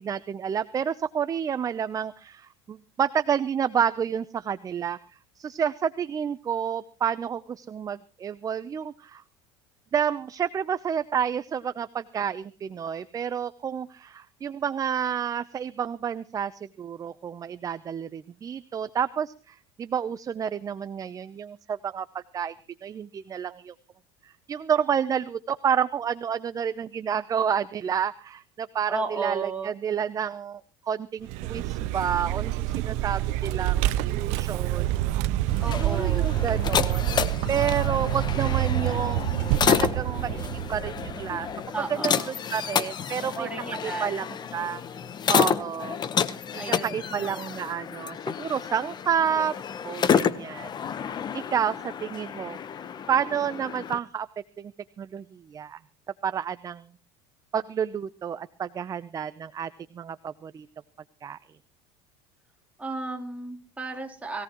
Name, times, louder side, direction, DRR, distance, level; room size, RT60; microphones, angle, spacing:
voice 1, 0.0-5.0 5.4-9.2 9.9-16.5 16.8-22.5 22.8-23.7 24.2-34.9 35.8-39.3 39.7-41.5 42.0-42.2 42.5-44.3 44.5-44.8 45.3-46.0 46.5-49.5 49.8-50.7 51.3-52.6 53.1-54.3 54.6-54.7 55.0-55.8 56.2-56.9 57.5-60.7 61.2-61.4, right 8 dB, 25° right, 14 dB, 0.7 m, -30 dB
voice 2, 28.9-29.7 35.6-36.4 41.7-42.4 43.2-44.3 46.6-47.4 62.8-64.4, right 3 dB, 10° right, 1 dB, 3.6 m, -34 dB
Vehicle, 31.2-41.6, right 14 dB, 65° right, 0.8 m, -27 dB
sound 1, 35.5-54.0, left 7 dB, 35° left, 1.1 m, -30 dB
21.5 x 17.0 x 3.1 m, 0.36 s
supercardioid pair, 105°, 13 cm